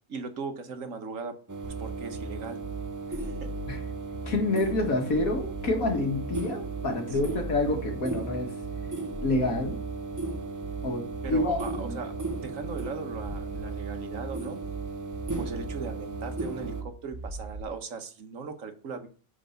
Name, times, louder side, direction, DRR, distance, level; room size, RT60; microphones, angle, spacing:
voice 1, 0.1-1.4 1.6-2.6 3.1-3.5 7.1-7.5 11.2-14.6 15.4-19.1, right 4 dB, 70° right, 7 dB, 1.5 m, -39 dB
sound 1, 1.5-16.8, right 3 dB, 25° right, 0.4 m, -36 dB
sound 2, 1.6-17.6, right 3 dB, 5° left, 2.8 m, -39 dB
voice 2, 4.3-8.5 9.2-9.8 10.8-12.0, left 2 dB, 80° left, 3 dB, 2.2 m, -28 dB
9.0 x 4.6 x 5.7 m, 0.40 s
omnidirectional pair, 1.5 m